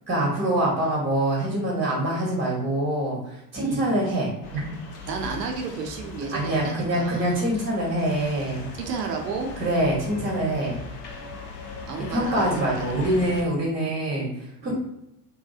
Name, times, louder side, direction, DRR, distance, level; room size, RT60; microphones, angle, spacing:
voice 1, 0.1-4.7 6.3-8.7 9.6-10.8 12.1-14.7, right 1 dB, 25° right, -3 dB, 0.9 m, -25 dB
sound 1, 4.4-13.4, left 3 dB, 55° left, 0.7 m, -39 dB
voice 2, 5.1-7.4 8.8-9.5 11.9-12.9 14.6-14.7, right 4 dB, 80° right, 3 dB, 0.7 m, -32 dB
2.8 x 2.3 x 2.3 m, 0.83 s
hypercardioid pair, 75°, 48 cm